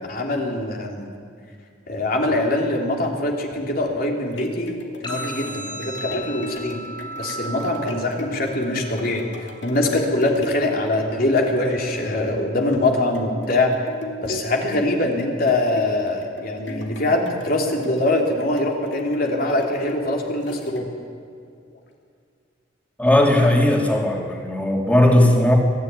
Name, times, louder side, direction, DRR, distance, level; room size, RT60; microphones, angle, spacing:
voice 1, 0.1-1.1 1.9-4.7 5.0-6.8 7.2-9.2 9.6-13.7 14.2-20.9, left 2 dB, 55° left, 0 dB, 3.4 m, -23 dB
sound 1, 4.1-21.2 21.7-21.8, left 1 dB, 70° left, 2.7 m, -37 dB
sound 2, 5.0-13.0, right 1 dB, 30° left, 5.0 m, -38 dB
voice 2, 23.0-25.6, left 1 dB, 10° left, 0 dB, 3.0 m, -17 dB
23.0 x 14.0 x 9.8 m, 2.2 s
head